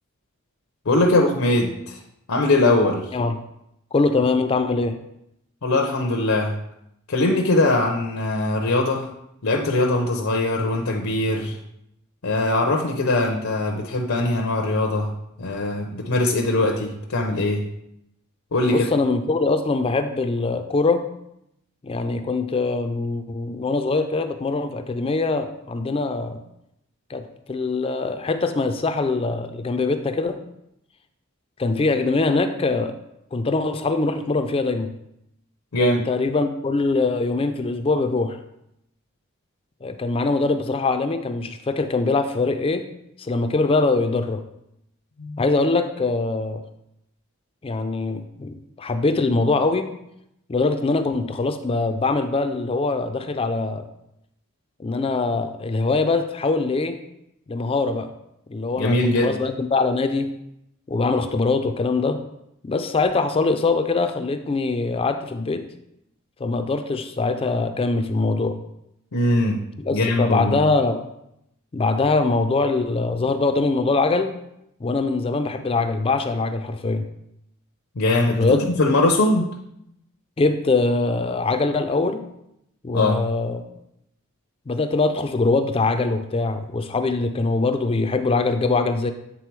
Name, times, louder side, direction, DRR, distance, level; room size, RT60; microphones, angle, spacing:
voice 1, 0.9-2.0 2.3-3.2 5.6-6.6 7.1-9.1 9.4-11.6 12.2-15.1 15.4-17.6 18.5-18.9 35.7-36.0 45.2-45.4 58.8-59.4 69.1-69.6 69.9-70.6 78.0-79.5 82.9-83.2, left 2 dB, 80° left, 1 dB, 0.7 m, -21 dB
voice 2, 3.9-5.0 18.7-21.1 21.8-26.4 27.1-30.4 31.6-32.9 33.3-34.9 35.8-38.4 39.8-42.8 43.2-44.4 45.4-46.6 47.6-49.9 50.5-53.9 54.8-57.0 57.5-58.1 58.5-60.3 60.9-62.2 62.6-65.6 66.4-68.6 69.8-71.0 71.7-74.3 74.8-77.1 78.4-78.6 80.4-82.2 82.8-83.6 84.7-89.1, left 3 dB, 25° left, 8 dB, 0.4 m, -23 dB
8.3 x 3.8 x 4.6 m, 0.80 s
head